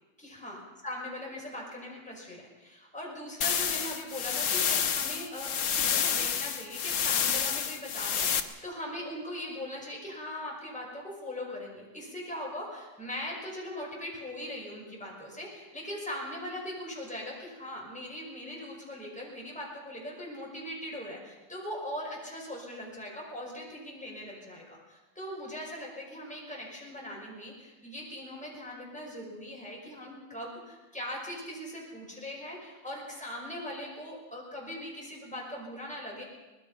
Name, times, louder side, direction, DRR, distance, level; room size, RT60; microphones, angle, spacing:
voice 1, 0.2-36.2, left 1 dB, 5° left, -3 dB, 5.6 m, -40 dB
sound 1, 3.4-8.4, left 7 dB, 75° left, 1.8 m, -29 dB
24.5 x 19.5 x 5.7 m, 1.2 s
omnidirectional pair, 2.1 m